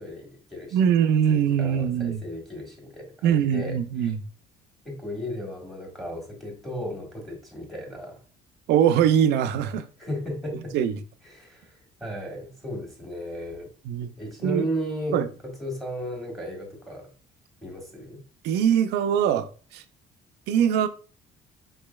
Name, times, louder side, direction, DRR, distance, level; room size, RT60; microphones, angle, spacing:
voice 1, 0.0-0.8 1.3-4.1 4.8-8.2 10.0-10.8 11.2-11.7 12.0-13.7 14.2-17.1 17.6-18.2, equal, ahead, 1.5 m, -35 dB
voice 2, 0.7-2.2 3.2-4.2 8.7-9.9 10.7-10.9 13.9-14.1 14.4-14.6 15.1-15.3 18.4-19.8 20.5-20.9, right 9 dB, 80° right, 0.5 m, -22 dB
4.9 x 3.1 x 2.2 m
cardioid pair, 110°, 17 cm